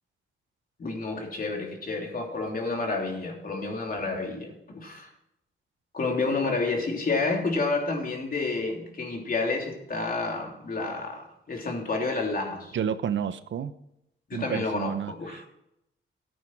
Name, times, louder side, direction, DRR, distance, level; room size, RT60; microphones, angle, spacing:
voice 1, 0.8-5.1 5.9-12.8 14.3-15.5, left 3 dB, 45° left, 1 dB, 3.2 m, -30 dB
voice 2, 12.7-13.7 14.3-15.4, right 8 dB, 65° right, 12 dB, 0.8 m, -31 dB
14.5 x 8.9 x 4.7 m, 0.81 s
cardioid pair, 110°, 21 cm